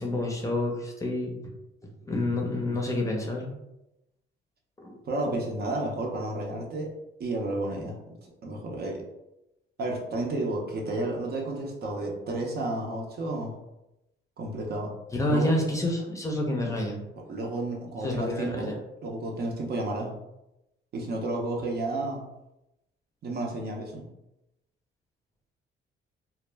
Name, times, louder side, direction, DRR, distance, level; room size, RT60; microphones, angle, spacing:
voice 1, 0.0-1.3 2.1-3.5 4.8-5.0 5.2-5.3 15.1-17.0 18.0-18.7, left 1 dB, 15° left, -1 dB, 0.6 m, -28 dB
voice 2, 5.0-6.9 7.2-9.0 9.8-13.5 14.4-14.9 15.3-15.5 17.3-18.7 19.0-20.1 20.9-22.2 23.2-24.0, right 2 dB, 55° right, 0 dB, 0.6 m, -31 dB
2.1 x 2.0 x 3.2 m, 0.90 s
cardioid pair, 90°, 20 cm